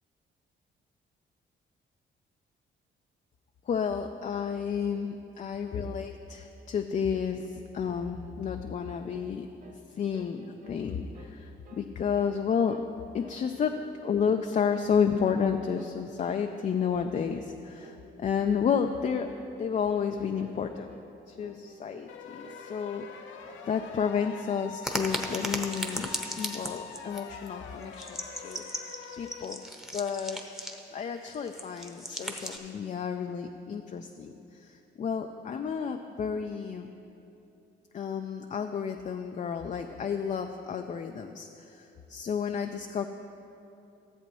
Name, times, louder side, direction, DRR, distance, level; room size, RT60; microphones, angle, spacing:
voice 1, 3.7-9.5 9.9-12.8 13.1-13.7 14.0-19.3 19.6-20.9 21.3-23.3 23.7-29.6 29.9-30.5 30.9-36.9 37.9-43.1, left 7 dB, 40° left, 5 dB, 0.4 m, -31 dB
sound 1, 9.1-9.3 9.6-9.8 10.1-11.3 11.6-11.9 12.2-12.4 12.7-12.9 13.2-14.0 14.2-15.0 15.2-15.5 15.8-16.0 16.3-16.5 16.8-17.0 17.3-17.5 17.8-18.0 18.3-18.5 18.8-19.1 19.4-19.5 19.9-20.1 20.4-20.6 20.9-21.1 21.4-22.1 22.4-23.2 23.4-24.2 24.5-25.2, right 3 dB, 40° right, 0.9 m, -53 dB
sound 2, 22.1-29.4, left 6 dB, 75° left, 0.7 m, -45 dB
sound 3, 24.8-27.2 27.5-27.6 27.8-30.9 31.3-32.6, equal, ahead, 0.9 m, -36 dB
14.0 x 7.5 x 3.1 m, 2.9 s
cardioid pair, 90°, 20 cm